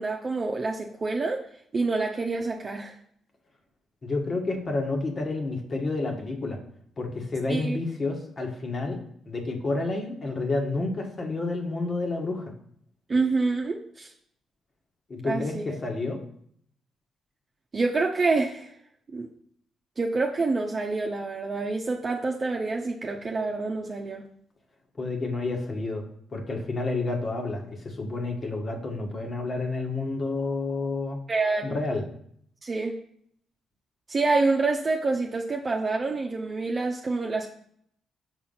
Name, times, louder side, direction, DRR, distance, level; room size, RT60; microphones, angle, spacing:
voice 1, 0.0-1.5 1.7-3.0 7.5-7.8 13.1-14.1 15.2-15.6 17.7-18.7 19.1-19.3 20.0-24.3 31.3-31.7 32.6-32.9 34.1-37.5, right 3 dB, 40° right, 1 dB, 0.8 m, -27 dB
voice 2, 4.0-6.6 7.0-9.0 9.3-12.5 15.1-16.2 25.0-26.0 26.3-31.2 31.6-32.1, left 3 dB, 45° left, 3 dB, 1.6 m, -30 dB
5.7 x 4.3 x 5.6 m, 0.66 s
hypercardioid pair, 45°, 0 cm